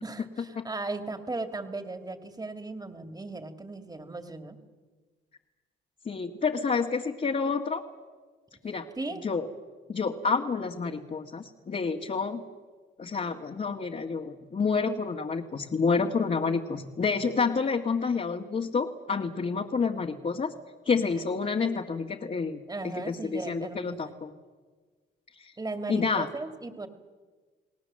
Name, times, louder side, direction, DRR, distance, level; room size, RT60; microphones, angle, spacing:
voice 1, 0.0-4.6 9.0-9.2 21.3-21.4 22.7-24.0 25.6-26.9, right 3 dB, 20° right, 8 dB, 2.5 m, -37 dB
voice 2, 6.1-7.8 8.6-8.9 9.2-9.5 9.9-12.4 13.0-20.5 20.9-24.3 25.4-25.5 25.9-26.3, left 5 dB, 40° left, 0 dB, 1.8 m, -29 dB
29.5 x 19.0 x 7.7 m, 1.4 s
cardioid pair, 90°, 20 cm